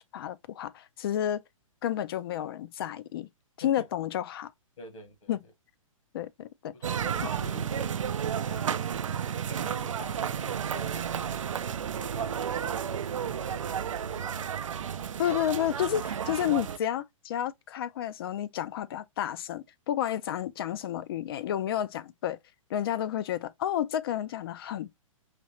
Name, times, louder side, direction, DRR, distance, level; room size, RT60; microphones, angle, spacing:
voice 1, 0.1-1.4 1.8-3.3 3.6-4.5 5.3-5.4 6.1-6.7 15.2-22.4 22.7-24.9, left 11 dB, 45° left, 0.5 m, -31 dB
voice 2, 4.8-5.5 6.7-8.8 9.5-11.4 11.9-15.7 16.3-16.5, left 3 dB, 65° left, 1.9 m, -49 dB
sound 1, 6.8-16.8, right 8 dB, 65° right, 0.5 m, -32 dB
5.0 x 3.1 x 2.9 m
figure-of-eight pair, 120°, 17 cm